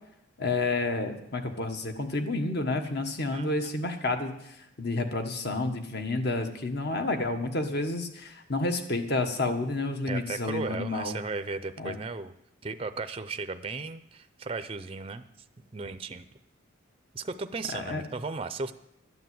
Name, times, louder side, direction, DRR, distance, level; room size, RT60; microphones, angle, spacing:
voice 1, 0.4-11.1 11.8-12.0 17.8-18.0, left 2 dB, 55° left, 6 dB, 1.4 m, -30 dB
voice 2, 10.1-12.3 12.6-15.2 15.7-16.3 17.1-18.7, right 3 dB, 25° right, 11 dB, 0.5 m, -35 dB
12.5 x 9.2 x 7.7 m, 0.84 s
head